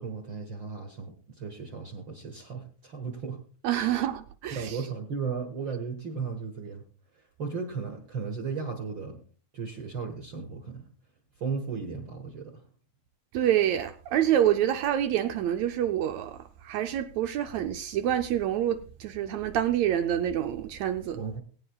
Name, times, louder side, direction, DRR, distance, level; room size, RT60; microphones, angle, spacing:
voice 1, 0.0-3.4 4.5-6.8 7.4-9.2 9.5-10.9 11.4-12.5 21.2-21.4, right 5 dB, 50° right, 1.7 m, -35 dB
voice 2, 3.6-4.8 13.3-16.4 16.6-21.2, right 11 dB, 75° right, 1.7 m, -27 dB
20.5 x 9.2 x 2.3 m
omnidirectional pair, 3.6 m